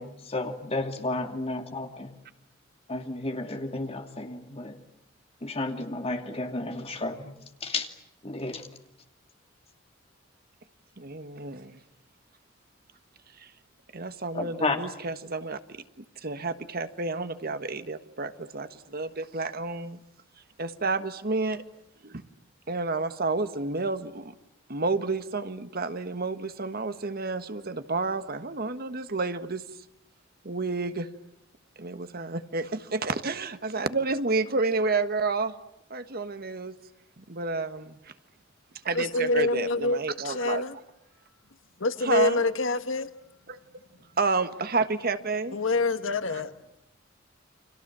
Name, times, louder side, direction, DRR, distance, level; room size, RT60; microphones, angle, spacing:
voice 1, 0.0-2.1 2.9-4.8 5.4-7.3 7.6-7.9 8.2-8.7 14.3-14.8, left 2 dB, 30° left, 2.7 m, -32 dB
voice 2, 11.0-11.8 13.4-13.5 13.9-15.6 16.2-20.0 20.6-21.6 22.0-22.2 22.7-24.3 24.7-29.6 30.4-31.1 31.8-35.5 35.9-36.7 37.2-38.1 38.8-40.6 42.0-42.4 43.5-43.6 44.2-45.6 46.3-46.4, right 3 dB, 50° right, 1.5 m, -30 dB
voice 3, 38.9-40.8 41.8-43.1 45.5-46.5, left 2 dB, 80° left, 1.5 m, -26 dB
30.0 x 25.5 x 7.5 m
head